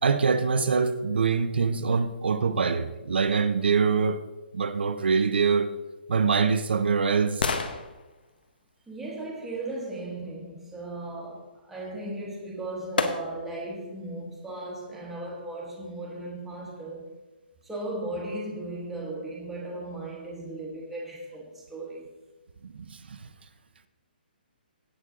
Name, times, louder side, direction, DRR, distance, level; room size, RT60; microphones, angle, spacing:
voice 1, 0.0-4.2 4.5-5.7 6.1-7.4 22.6-23.2, right 5 dB, 80° right, 0.8 m, -24 dB
sound 1, 5.9-10.0 12.1-12.2 13.0-13.7 14.1-14.2, left 4 dB, 65° left, 1.0 m, -34 dB
voice 2, 8.9-17.1 17.6-22.1, right 2 dB, 5° right, 1.3 m, -36 dB
17.5 x 6.3 x 3.8 m
hypercardioid pair, 180°, 6 cm